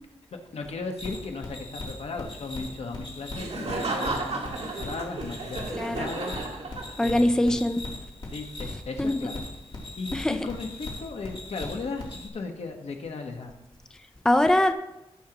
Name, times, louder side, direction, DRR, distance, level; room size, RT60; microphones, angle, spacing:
voice 1, 0.5-6.3 7.0-7.5 8.3-9.4 10.0-13.6, left 4 dB, 70° left, 4 dB, 1.3 m, -36 dB
sound 1, 1.0-12.3, left 2 dB, 50° left, 3.0 m, -39 dB
Laughter, 3.3-7.3, right 3 dB, 70° right, 2.1 m, -33 dB
voice 2, 5.7-6.1 7.0-7.8 9.0-9.1 10.1-10.4 14.2-14.7, left 1 dB, 5° left, 8 dB, 0.5 m, -22 dB
18.5 x 6.4 x 3.0 m, 0.94 s
wide cardioid pair, 105°, 11 cm